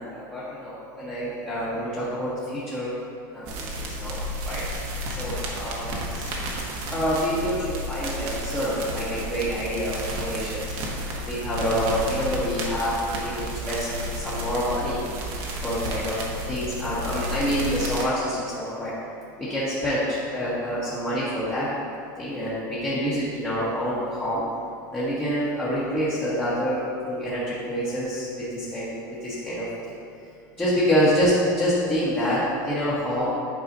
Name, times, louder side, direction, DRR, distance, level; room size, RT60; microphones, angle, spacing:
voice 1, 0.0-2.9 3.3-4.2 4.4-4.6 5.1-6.3 6.9-10.6 11.2-15.0 15.6-16.2 16.5-18.9 19.4-20.0 20.3-21.7 22.2-24.4 24.9-28.9 29.2-29.9 30.6-33.3, equal, 15° left, -10 dB, 1.3 m, -27 dB
sound 1, 3.4-18.0, equal, 55° right, 1.2 m, -32 dB
8.6 x 4.8 x 2.7 m, 2.4 s
supercardioid pair, 125°, 11 cm